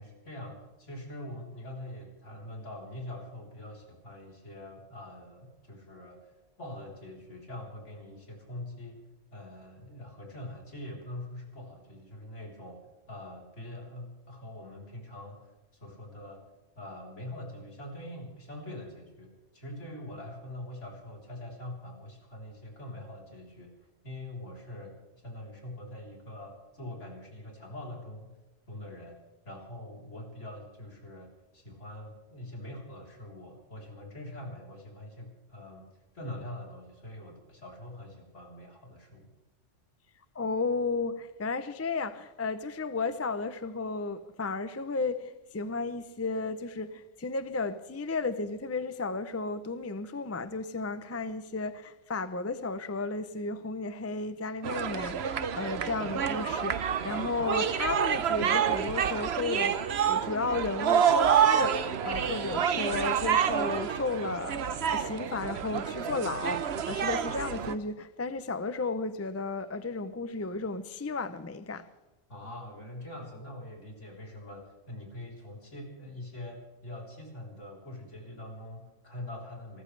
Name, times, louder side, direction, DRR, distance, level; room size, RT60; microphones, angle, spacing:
voice 1, 0.0-9.0 9.3-12.8 13.1-16.4 16.8-23.7 24.0-28.3 28.7-29.2 29.4-35.9 36.1-39.3 72.3-79.8, left 1 dB, 70° left, 4.2 m, -44 dB
voice 2, 40.3-71.9, left 3 dB, 20° left, 0.4 m, -34 dB
sound 1, 54.6-67.8, right 8 dB, 60° right, 1.0 m, -28 dB
28.5 x 14.0 x 3.3 m
omnidirectional pair, 1.3 m